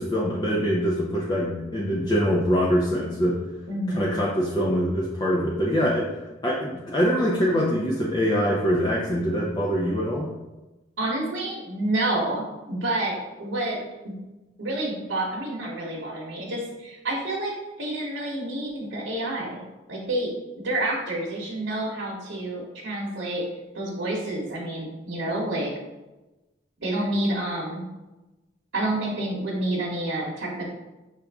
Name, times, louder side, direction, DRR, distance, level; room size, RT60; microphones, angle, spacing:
voice 1, 0.0-3.4 4.0-6.1 6.4-10.3, equal, 20° left, -3 dB, 0.5 m, -24 dB
voice 2, 3.7-4.2 11.0-13.8 14.0-14.1 14.6-17.5 17.8-19.6 19.9-20.3 20.6-23.4 23.7-25.7 26.8-27.9 28.7-30.7, right 1 dB, 85° right, -4 dB, 0.9 m, -28 dB
5.9 x 2.5 x 3.4 m, 1.1 s
head